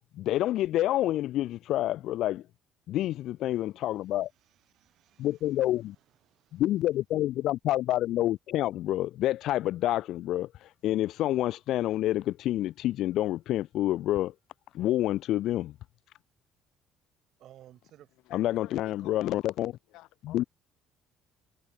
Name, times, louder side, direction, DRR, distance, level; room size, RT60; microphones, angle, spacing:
voice 1, 0.1-2.4 2.9-4.3 5.2-6.0 6.5-14.3 14.7-15.7 18.3-19.7 20.3-20.4, left 14 dB, 55° left, 0.5 m, -28 dB
voice 2, 3.5-6.6 17.4-18.2 19.0-19.1, right 12 dB, 50° right, 7.1 m, -59 dB
voice 3, 18.3-19.5 19.9-20.5, left 18 dB, 70° left, 3.0 m, -52 dB
cardioid pair, 175°, 0 cm